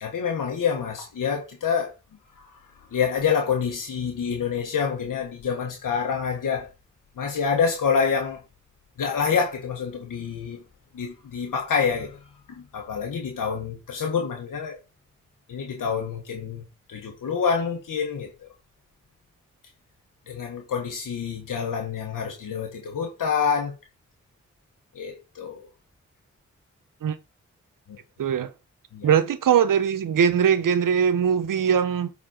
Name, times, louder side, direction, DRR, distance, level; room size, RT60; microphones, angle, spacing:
voice 1, 0.0-1.9 2.9-6.7 7.2-8.4 9.0-10.6 10.9-12.2 12.5-14.8 15.5-18.5 20.3-23.8 24.9-25.7 27.9-28.0 28.9-29.2, left 6 dB, 80° left, 1.4 m, -27 dB
voice 2, 28.2-28.5 29.0-32.1, right 8 dB, 80° right, 0.8 m, -21 dB
7.6 x 4.3 x 4.4 m
cardioid pair, 40°, 32 cm